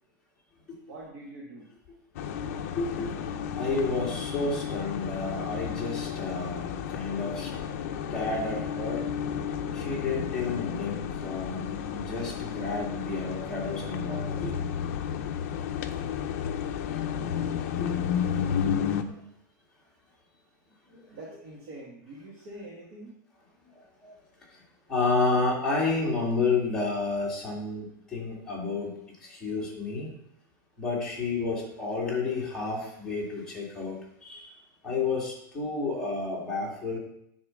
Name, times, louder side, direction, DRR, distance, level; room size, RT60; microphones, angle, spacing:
voice 1, 0.9-1.7 21.1-23.1, right 1 dB, 35° right, -4 dB, 1.6 m, -44 dB
sound 1, 2.1-19.0, left 8 dB, 45° left, 0.7 m, -32 dB
voice 2, 2.8-3.1 3.5-7.5 8.1-9.1 9.7-14.5 17.8-18.0 18.5-18.6 19.0-19.2 20.9-21.2 24.0-24.1 24.5-24.6 24.9-28.9 29.2-30.1 30.8-34.5 34.8-37.0, left 3 dB, 5° left, -5 dB, 2.0 m, -31 dB
9.6 x 4.3 x 6.3 m, 0.77 s
supercardioid pair, 175°, 11 cm